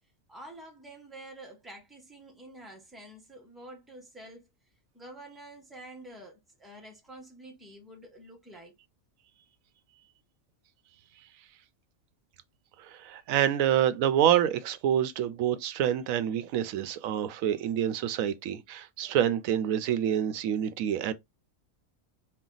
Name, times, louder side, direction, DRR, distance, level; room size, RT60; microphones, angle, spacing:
voice 1, 0.3-4.5 4.9-8.7, right 1 dB, ahead, 1.1 m, -48 dB
voice 2, 12.8-21.1, right 10 dB, 90° right, 1.0 m, -27 dB
4.4 x 2.3 x 3.8 m
omnidirectional pair, 1.4 m